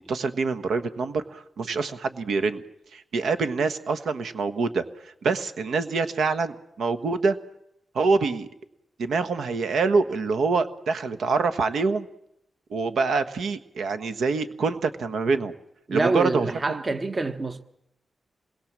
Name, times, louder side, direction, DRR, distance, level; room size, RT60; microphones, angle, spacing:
voice 1, 0.1-2.6 2.9-4.8 5.2-7.4 7.9-8.5 9.0-12.1 12.7-15.5 15.9-16.8, right 4 dB, 85° right, 1.4 m, -25 dB
voice 2, 15.9-17.6, right 2 dB, 35° right, 1.1 m, -26 dB
26.5 x 21.0 x 7.5 m
wide cardioid pair, 110°, 0 cm